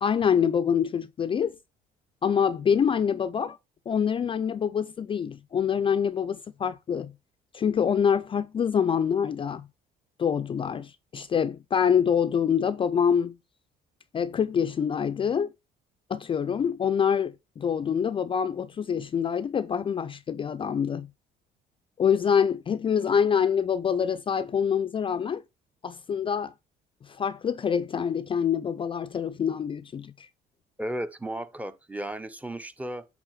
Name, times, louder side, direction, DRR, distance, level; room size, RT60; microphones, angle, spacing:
voice 1, 0.0-1.6 2.2-3.6 3.9-7.1 7.5-9.7 10.2-13.4 14.1-15.5 16.1-21.1 22.0-25.4 25.8-26.5 27.0-30.3, left 7 dB, 30° left, 0.4 m, -25 dB
voice 2, 30.8-33.1, right 1 dB, 10° right, 0.6 m, -34 dB
8.8 x 3.4 x 4.6 m
cardioid pair, 110°, 17 cm